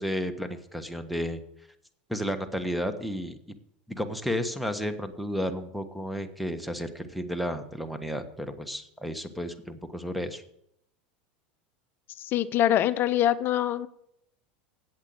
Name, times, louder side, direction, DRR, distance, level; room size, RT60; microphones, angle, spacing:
voice 1, 0.0-1.4 2.1-3.4 3.9-10.4, equal, ahead, 1.3 m, -32 dB
voice 2, 12.2-13.9, left 12 dB, 45° left, 0.6 m, -24 dB
8.2 x 8.2 x 7.8 m
hypercardioid pair, 90°, 5 cm